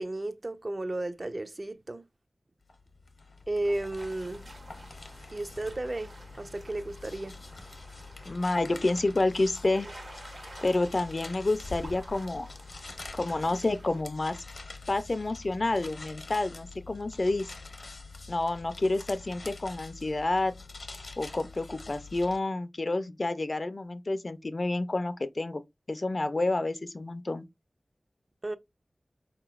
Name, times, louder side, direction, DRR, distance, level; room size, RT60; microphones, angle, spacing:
voice 1, 0.0-2.0 3.5-4.4 5.3-6.1 6.4-7.4 28.4-28.6, right 2 dB, 45° right, 0.4 m, -33 dB
sound 1, 2.7-22.4, left 3 dB, 75° left, 0.7 m, -45 dB
sound 2, 4.0-14.0, right 1 dB, 80° right, 1.4 m, -51 dB
voice 2, 8.3-9.9 10.6-12.5 13.1-14.4 14.9-17.5 18.3-20.5 21.2-25.6 25.9-27.4, left 2 dB, 55° left, 0.4 m, -29 dB
3.9 x 2.9 x 2.3 m
wide cardioid pair, 55°, 0 cm